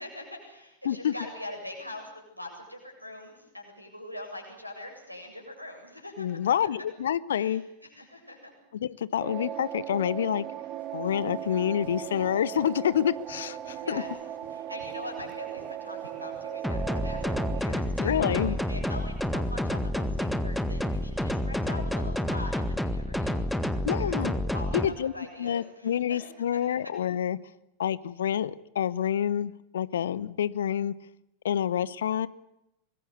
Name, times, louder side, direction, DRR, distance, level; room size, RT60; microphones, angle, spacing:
voice 1, 0.0-6.7 7.4-8.5 13.8-14.1 14.5-26.2 26.5-26.8, left 1 dB, 90° right, 3 dB, 7.8 m, -43 dB
voice 2, 6.2-7.6 8.7-10.4 10.9-14.0 18.0-18.6 23.8-24.3 24.7-25.1 25.4-27.4 27.8-30.9 31.4-32.3, left 9 dB, 65° left, 20 dB, 0.9 m, -28 dB
sound 1, 9.2-17.6, right 11 dB, 35° right, 2.0 m, -38 dB
sound 2, 10.7-21.3, equal, 80° left, 6.1 m, -57 dB
sound 3, 16.6-24.8, left 1 dB, ahead, 1.8 m, -29 dB
25.0 x 21.5 x 8.3 m, 0.86 s
figure-of-eight pair, 90°, 0 cm